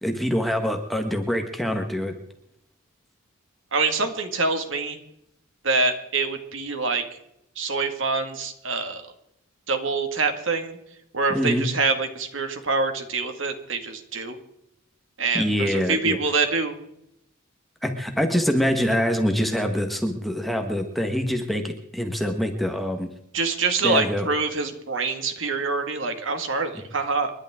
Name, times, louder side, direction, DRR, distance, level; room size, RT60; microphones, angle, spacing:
voice 1, 0.0-2.1 11.3-11.7 15.3-16.2 17.8-23.1 23.8-24.3, equal, ahead, 4 dB, 1.4 m, -25 dB
voice 2, 3.7-5.0 5.6-7.0 7.6-9.1 9.7-10.8 11.1-14.4 15.2-16.8 23.3-27.3, right 4 dB, 65° right, 6 dB, 2.0 m, -25 dB
29.5 x 11.5 x 3.7 m, 0.78 s
head